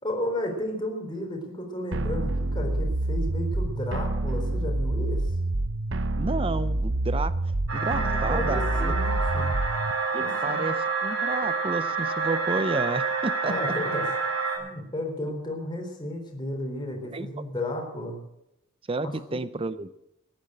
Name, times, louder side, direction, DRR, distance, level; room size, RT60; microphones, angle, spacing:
voice 1, 0.0-5.3 7.9-9.6 10.2-10.6 13.4-14.1 14.6-18.2 19.0-19.1, left 1 dB, 20° left, 1 dB, 3.8 m, -33 dB
sound 1, 1.9-9.9, right 2 dB, 65° right, 0.9 m, -27 dB
voice 2, 6.1-7.3 7.7-8.9 10.1-13.5 17.1-17.3 18.9-19.9, right 3 dB, 25° right, 14 dB, 0.5 m, -31 dB
sound 2, 7.7-14.6, right 4 dB, 80° right, 4.0 m, -28 dB
14.5 x 10.5 x 7.9 m, 0.85 s
head